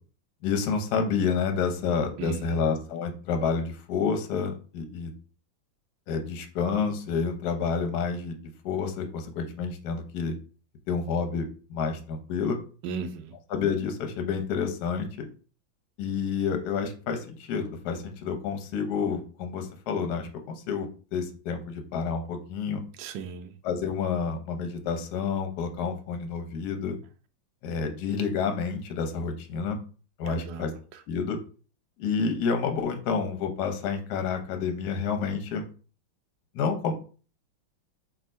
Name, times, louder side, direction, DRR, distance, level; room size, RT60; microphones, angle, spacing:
voice 1, 0.4-5.1 6.1-8.4 8.6-10.3 10.9-12.6 13.5-15.3 16.0-22.8 23.6-27.0 27.6-29.8 30.2-30.7 31.1-31.4 32.0-35.7 36.5-36.9, left 5 dB, 65° left, 1.1 m, -29 dB
voice 2, 2.2-2.6 12.8-13.3 23.0-23.5 30.3-31.0, right 5 dB, 75° right, 1.0 m, -37 dB
3.5 x 2.6 x 4.3 m
omnidirectional pair, 2.2 m